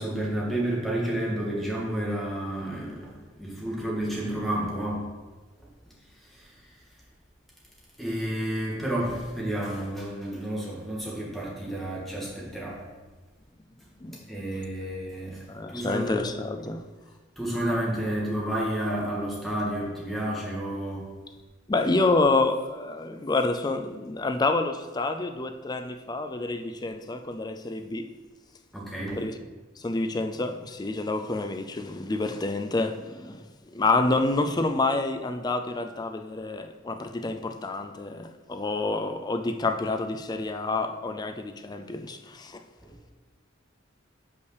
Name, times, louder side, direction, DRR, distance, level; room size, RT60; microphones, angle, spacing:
voice 1, 0.0-5.1 6.3-6.5 8.0-12.8 14.3-15.5 15.7-16.2 17.4-21.1 28.7-29.2 42.8-42.9, right 1 dB, ahead, 1.7 m, -30 dB
voice 2, 15.5-16.8 21.7-28.1 29.2-29.4 29.8-42.6, left 3 dB, 20° left, 0.4 m, -28 dB
5.6 x 4.9 x 6.4 m
head